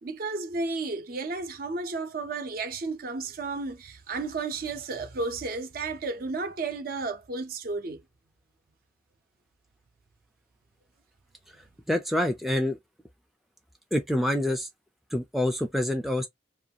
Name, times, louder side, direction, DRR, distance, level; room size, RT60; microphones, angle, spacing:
voice 1, 0.0-8.0, right 3 dB, 50° right, 0.5 m, -33 dB
voice 2, 11.9-12.8 13.9-14.7 15.1-16.3, left 1 dB, ahead, 0.3 m, -26 dB
2.5 x 2.3 x 2.7 m
head